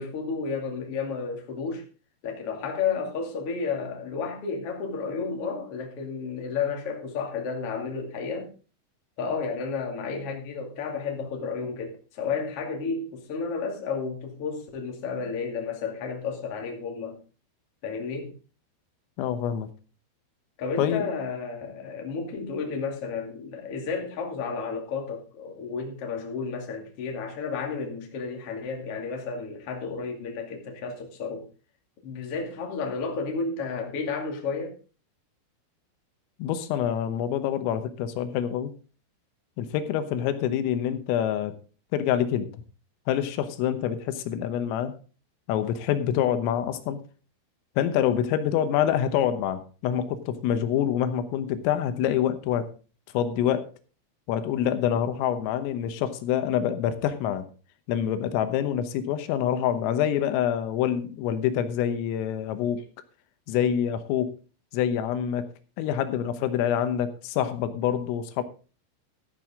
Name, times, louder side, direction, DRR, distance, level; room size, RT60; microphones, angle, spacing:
voice 1, 0.0-1.8 2.2-8.5 9.2-17.2 17.8-18.3 20.6-31.4 32.0-34.8, left 5 dB, 40° left, 2.4 m, -32 dB
voice 2, 19.2-19.7 20.8-21.1 36.4-38.7 39.6-41.6 41.9-42.5 43.1-45.0 45.5-47.0 47.8-52.7 53.1-53.7 54.3-57.5 57.9-62.8 63.5-64.4 64.7-65.5 65.8-68.4, left 10 dB, 85° left, 3.7 m, -26 dB
13.5 x 10.5 x 3.7 m
omnidirectional pair, 5.8 m